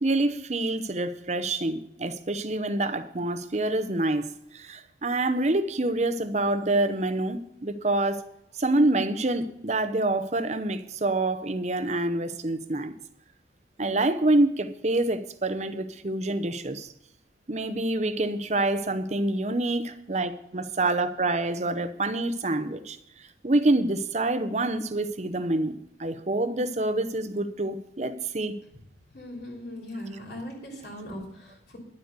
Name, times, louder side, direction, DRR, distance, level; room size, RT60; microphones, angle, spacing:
voice 1, 0.0-8.2 8.6-12.9 13.8-16.9 17.5-23.0 23.4-28.5, right 2 dB, 35° right, 0.8 m, -26 dB
voice 2, 29.1-31.8, left 1 dB, 55° left, 3.4 m, -39 dB
11.0 x 8.0 x 6.6 m
head